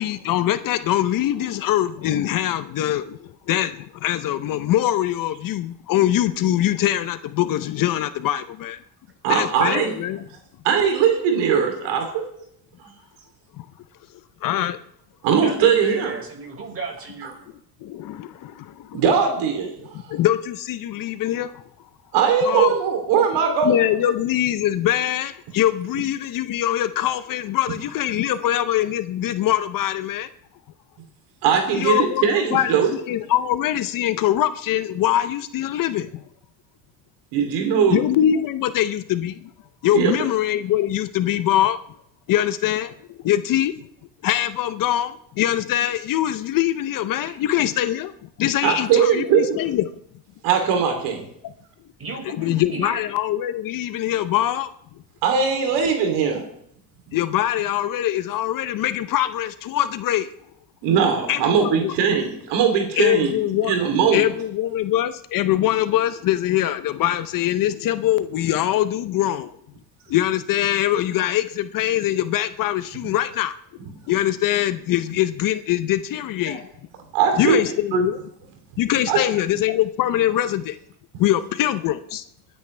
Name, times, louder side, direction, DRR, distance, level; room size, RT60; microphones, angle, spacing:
voice 1, 0.0-8.8 9.3-10.2 13.6-13.7 14.4-14.8 17.8-19.0 20.1-21.6 22.4-22.7 23.6-30.3 31.7-32.2 32.5-36.2 37.9-39.5 39.8-41.8 42.3-43.9 44.2-49.9 51.4-51.5 52.2-54.7 57.1-60.3 61.3-61.9 63.0-63.7 64.1-69.5 70.1-73.6 74.1-76.7 77.4-78.2 78.8-80.8 81.2-82.2, left 12 dB, 50° left, 13 dB, 0.7 m, -23 dB
voice 2, 9.2-9.9 10.6-12.2 15.2-16.1 18.9-19.9 22.1-23.8 31.4-32.9 37.3-38.0 39.9-40.1 48.6-49.6 50.4-51.2 55.2-56.4 60.8-63.4 63.6-64.3 77.1-77.6 77.9-78.0 79.1-79.2, right 7 dB, 75° right, 4 dB, 3.1 m, -20 dB
voice 3, 15.4-17.4 52.0-53.0, right 3 dB, 35° right, 1 dB, 5.2 m, -33 dB
22.5 x 9.7 x 3.3 m, 0.72 s
cardioid pair, 110°, 42 cm